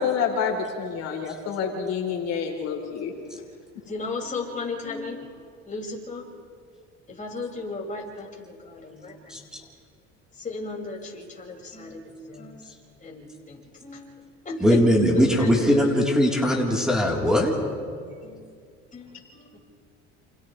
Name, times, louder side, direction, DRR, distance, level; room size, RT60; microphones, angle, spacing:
voice 1, 0.0-3.1, left 6 dB, 60° left, 1 dB, 3.6 m, -28 dB
voice 2, 3.8-5.3 5.6-6.2 7.1-9.5 10.3-12.7 13.0-14.8 15.1-16.0 18.0-18.6 18.9-19.6, left 3 dB, 25° left, -2 dB, 6.0 m, -36 dB
voice 3, 9.3-9.6 14.6-17.5, equal, ahead, -2 dB, 3.8 m, -20 dB
29.5 x 29.0 x 3.3 m, 2.2 s
supercardioid pair, 100°, 30 cm